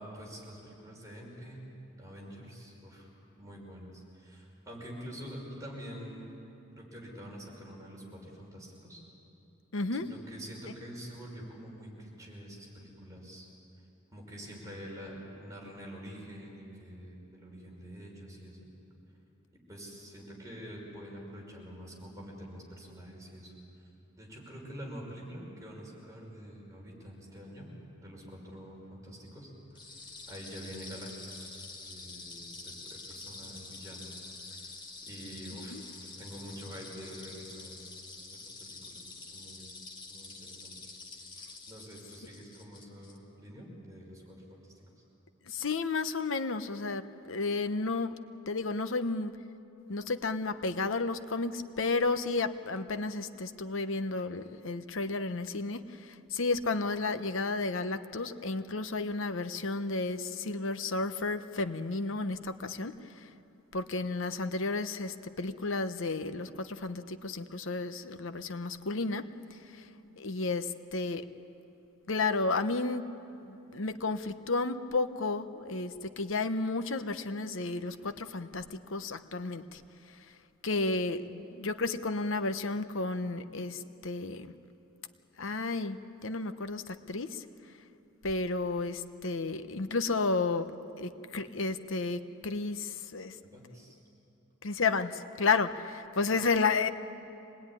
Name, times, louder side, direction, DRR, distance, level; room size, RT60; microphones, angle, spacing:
voice 1, 0.0-1.6 2.0-3.1 3.4-6.3 6.8-9.0 9.9-13.5 14.1-18.6 19.7-23.5 24.2-27.7 28.0-29.5 29.9-30.0 30.3-34.1 34.6-34.7 35.0-35.8 36.2-37.8 38.3-39.7 40.1-40.7 41.7-44.8 93.5-94.0, equal, 15° right, -2 dB, 5.7 m, -46 dB
voice 2, 9.7-10.1 35.7-35.8 45.5-48.2 48.5-49.3 49.9-63.0 63.7-69.3 70.2-71.2 72.1-73.1 73.5-79.8 80.6-84.5 85.4-87.4 88.2-90.7 91.0-93.4 94.6-96.9, left 3 dB, 65° left, 10 dB, 1.0 m, -32 dB
sound 1, 29.8-43.2, left 3 dB, 25° left, 2.6 m, -47 dB
25.5 x 19.5 x 9.9 m, 2.8 s
head